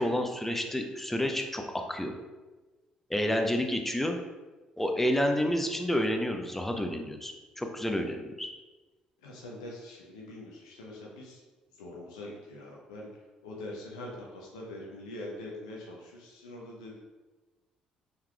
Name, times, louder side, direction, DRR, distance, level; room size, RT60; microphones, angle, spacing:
voice 1, 0.0-2.1 3.1-4.2 4.8-8.5, equal, 5° left, 4 dB, 0.5 m, -29 dB
voice 2, 9.2-11.4 11.8-13.1 13.4-17.0, left 1 dB, 75° left, -2 dB, 0.7 m, -43 dB
4.3 x 3.7 x 2.3 m, 1.2 s
figure-of-eight pair, 50°, 4 cm